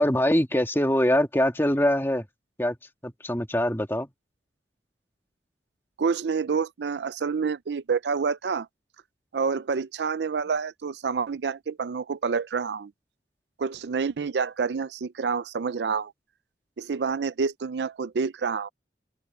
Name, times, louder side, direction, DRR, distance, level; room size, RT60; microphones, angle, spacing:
voice 1, 0.0-2.3 2.6-2.8 3.0-4.1, equal, 15° left, 2.2 m, -23 dB
voice 2, 6.0-8.7 9.3-12.9 13.6-16.1 16.8-18.7, right 5 dB, 75° right, 0.5 m, -28 dB
open air
head